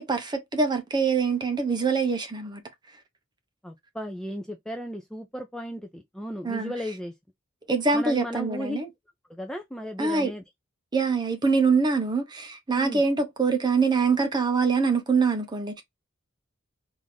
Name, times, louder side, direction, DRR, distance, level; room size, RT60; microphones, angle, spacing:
voice 1, 0.0-2.6 6.4-6.7 7.7-8.9 10.0-10.3 10.9-15.8, right 4 dB, 20° right, 0.7 m, -24 dB
voice 2, 3.6-7.1 7.9-8.8 9.3-10.4 12.8-13.0, equal, 5° left, 0.3 m, -35 dB
3.6 x 2.6 x 3.2 m
head